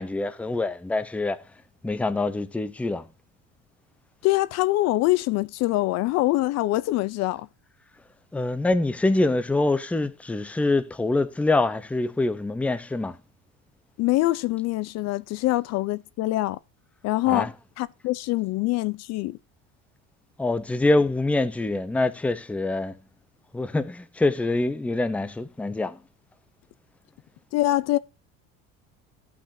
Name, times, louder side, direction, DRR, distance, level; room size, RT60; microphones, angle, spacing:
voice 1, 0.0-1.4 1.8-3.0 8.3-13.2 17.2-17.5 20.4-23.0 23.5-26.0, left 2 dB, 5° left, 0.5 m, -25 dB
voice 2, 4.2-7.5 14.0-16.6 17.0-17.5 17.8-19.4 27.5-28.0, left 17 dB, 55° left, 0.5 m, -24 dB
14.0 x 6.0 x 2.6 m
cardioid pair, 135°, 32 cm